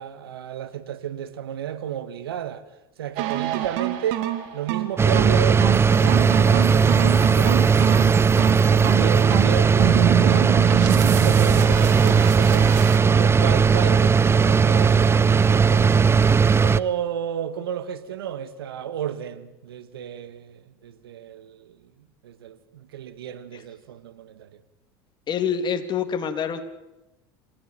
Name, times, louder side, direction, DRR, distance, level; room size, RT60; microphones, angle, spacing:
voice 1, 0.0-2.6 3.0-10.5 11.1-16.0 16.6-21.9 22.2-24.6, right 9 dB, 90° right, 1.8 m, -32 dB
sound 1, 3.2-13.0, right 14 dB, 65° right, 2.6 m, -27 dB
Remote cooling unit - condenser., 5.0-16.8, right 6 dB, 20° right, 0.8 m, -17 dB
voice 2, 25.3-26.6, left 7 dB, 40° left, 3.1 m, -26 dB
27.0 x 15.5 x 9.1 m
hypercardioid pair, 90°, 12 cm